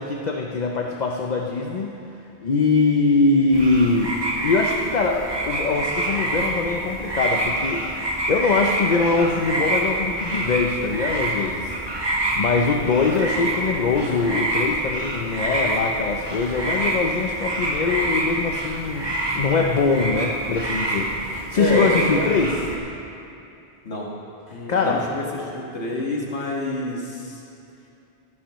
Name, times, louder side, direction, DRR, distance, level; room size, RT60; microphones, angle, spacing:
voice 1, 0.0-2.0 2.4-4.2 4.4-11.7 12.4-22.6 24.5-25.0, left 4 dB, 50° left, 1 dB, 0.7 m, -22 dB
sound 1, 3.5-22.8, right 1 dB, 25° right, 1.2 m, -26 dB
voice 2, 21.6-22.6 23.9-24.1 24.5-27.4, left 2 dB, 90° left, -3 dB, 1.9 m, -27 dB
15.0 x 12.0 x 3.1 m, 2.7 s
omnidirectional pair, 1.1 m